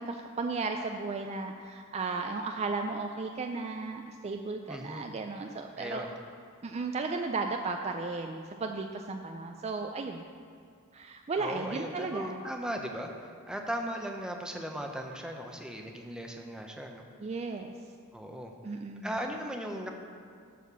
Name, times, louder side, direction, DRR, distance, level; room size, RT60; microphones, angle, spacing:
voice 1, 0.0-6.1 6.6-10.3 10.9-12.4 17.2-17.7 18.6-19.1, right 3 dB, 30° right, 4 dB, 0.4 m, -35 dB
voice 2, 4.7-5.1 5.8-6.1 11.4-17.1 18.1-18.5 19.0-19.9, equal, 5° right, 2 dB, 0.7 m, -37 dB
12.0 x 4.2 x 6.9 m, 2.2 s
head